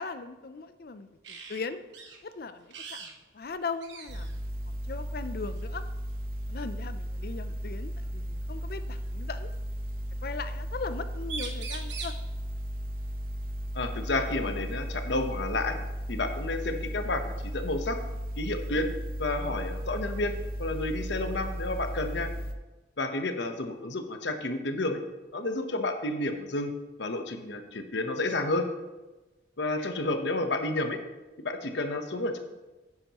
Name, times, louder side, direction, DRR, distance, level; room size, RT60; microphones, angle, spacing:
voice 1, 0.0-1.8 2.2-5.8 6.5-9.5 10.2-12.1, left 4 dB, 55° left, 11 dB, 0.5 m, -39 dB
sound 1, 1.2-1.6 1.9-2.2 2.7-3.1 3.4-3.5 3.8-4.4 5.6-5.8 7.5-7.6 8.7-9.5 10.9-11.0 11.2-12.2 14.2-14.3 14.7-15.7, right 5 dB, 75° right, 1.2 m, -42 dB
sound 2, 4.1-22.5, equal, 50° right, 0.8 m, -35 dB
voice 2, 13.7-15.8 16.1-18.0 18.4-18.9 19.2-20.3 20.6-22.3 23.0-25.0 25.3-28.7 29.6-31.0 31.4-32.4, left 2 dB, 75° left, 6 dB, 1.0 m, -30 dB
10.0 x 9.7 x 3.0 m, 1.1 s
head